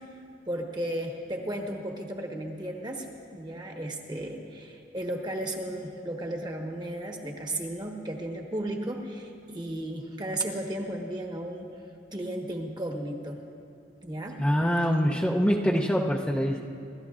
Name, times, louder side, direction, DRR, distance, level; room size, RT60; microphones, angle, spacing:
voice 1, 0.5-3.1 3.3-11.7 12.1-13.4 14.0-14.4, right 1 dB, 25° right, 2 dB, 1.2 m, -34 dB
voice 2, 14.4-16.6, equal, 5° left, -2 dB, 0.6 m, -24 dB
26.5 x 13.0 x 2.5 m, 2.5 s
head